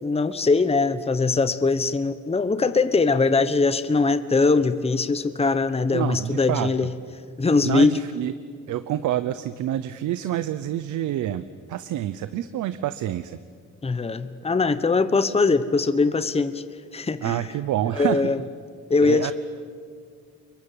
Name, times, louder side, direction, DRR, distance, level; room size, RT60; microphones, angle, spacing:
voice 1, 0.0-6.9 7.4-7.9 13.8-16.6 16.9-17.5 17.9-18.4 18.9-19.3, left 4 dB, 20° left, 12 dB, 1.1 m, -21 dB
voice 2, 5.9-6.9 7.6-8.3 8.7-13.4 17.2-18.3 19.0-19.3, right 12 dB, 80° right, 13 dB, 0.9 m, -27 dB
25.0 x 22.5 x 9.1 m, 2.1 s
cardioid pair, 90°, 30 cm